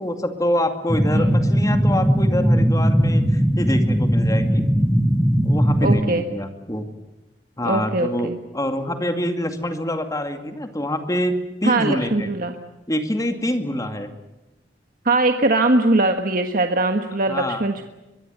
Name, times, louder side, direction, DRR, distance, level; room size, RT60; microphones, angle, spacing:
voice 1, 0.0-4.6 5.4-6.9 7.6-12.4 12.9-14.1 17.3-17.6, left 1 dB, 20° left, 6 dB, 2.3 m, -26 dB
sound 1, 0.9-6.0, equal, ahead, 1.1 m, -18 dB
voice 2, 5.8-6.2 7.6-8.4 11.6-12.5 15.0-17.8, right 2 dB, 50° right, 5 dB, 1.5 m, -21 dB
23.5 x 22.5 x 8.1 m, 1.0 s
head